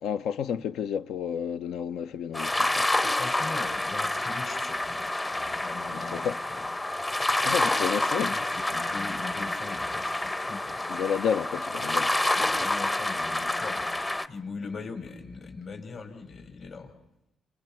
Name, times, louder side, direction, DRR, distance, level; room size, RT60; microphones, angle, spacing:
voice 1, 0.0-2.9 5.9-6.4 7.4-8.3 10.9-12.1, left 8 dB, 80° left, 0.8 m, -31 dB
sound 1, 2.3-14.3, left 2 dB, 20° left, 0.8 m, -28 dB
voice 2, 3.0-6.2 6.5-6.7 7.5-10.8 12.3-16.9, left 4 dB, 55° left, 5.1 m, -41 dB
30.0 x 29.0 x 4.5 m
cardioid pair, 90°, 0 cm